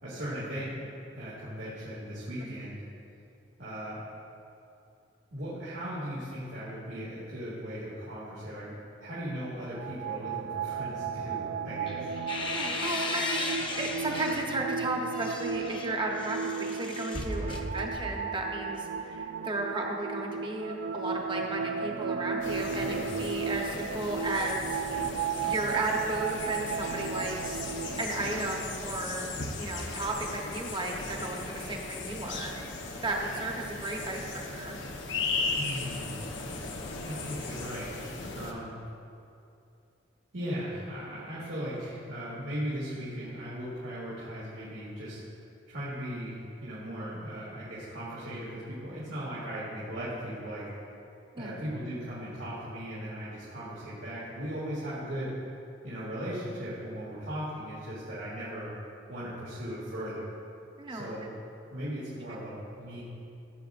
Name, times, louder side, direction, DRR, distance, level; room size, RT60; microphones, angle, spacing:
voice 1, 0.0-0.8 1.1-2.8 3.6-4.0 5.3-8.7 9.0-12.1 17.4-17.6 22.8-23.0 35.5-36.2 37.0-38.1 38.3-38.7 40.3-45.2 45.7-50.7 51.4-55.3 55.8-58.7 59.1-60.3 60.9-61.3 61.7-63.0, equal, 90° right, -10 dB, 2.3 m, -38 dB
sound 1, 9.6-28.0, right 6 dB, 75° right, 0.3 m, -35 dB
sound 2, 11.9-14.5 15.0-18.3, left 2 dB, 25° left, 0.6 m, -36 dB
voice 2, 12.5-17.5 17.7-27.7 28.0-29.3 29.6-32.6 33.0-34.8 51.3-51.5 60.8-61.1, right 2 dB, 25° right, 0 dB, 1.0 m, -34 dB
sound 3, 22.4-38.5, left 3 dB, 85° left, 0.9 m, -37 dB
15.5 x 7.6 x 2.5 m, 2.6 s
head